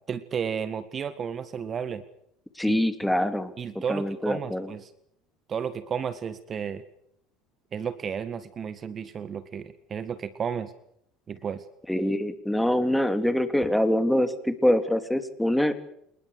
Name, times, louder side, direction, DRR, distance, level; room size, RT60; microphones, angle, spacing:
voice 1, 0.1-2.0 2.6-2.8 3.6-4.9 5.5-6.8 7.7-10.7 11.3-11.6, right 7 dB, 35° right, 14 dB, 1.8 m, -33 dB
voice 2, 2.5-3.5 3.9-4.7 11.9-15.7, left 1 dB, 5° left, 10 dB, 3.1 m, -24 dB
28.0 x 20.5 x 6.6 m, 0.74 s
figure-of-eight pair, 65°, 0 cm